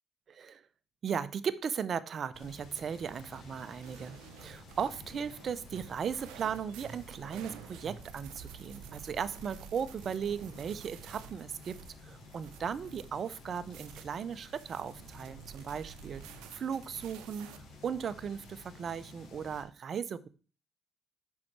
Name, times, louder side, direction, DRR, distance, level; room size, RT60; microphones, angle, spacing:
voice 1, 0.3-0.6 1.0-16.2 16.5-17.5 17.8-20.3, right 7 dB, 50° right, 14 dB, 0.7 m, -37 dB
sound 1, 2.3-19.6, left 2 dB, 70° left, 3.5 m, -53 dB
sound 2, 3.8-17.6, right 9 dB, 85° right, 0.7 m, -51 dB
6.1 x 5.5 x 6.0 m, 0.37 s
supercardioid pair, 75°, 0 cm